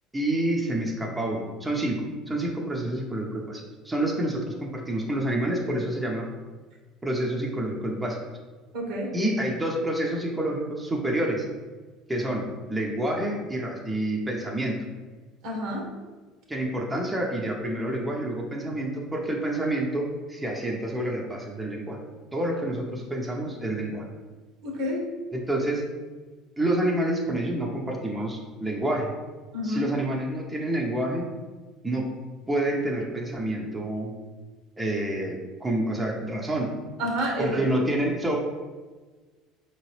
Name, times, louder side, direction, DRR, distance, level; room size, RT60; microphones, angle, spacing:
voice 1, 0.1-6.3 7.0-8.2 9.1-11.4 12.1-14.8 16.5-22.0 22.3-24.0 25.3-25.8 26.6-29.1 29.6-31.3 31.8-32.1 32.5-34.2 34.8-36.7 37.4-38.4, right 1 dB, 15° right, -1 dB, 0.8 m, -28 dB
voice 2, 8.7-9.1 15.4-15.9 24.6-25.1 29.5-29.9 37.0-37.6, equal, 70° right, -1 dB, 1.3 m, -29 dB
4.7 x 3.0 x 3.2 m, 1.3 s
hypercardioid pair, 80°, 0 cm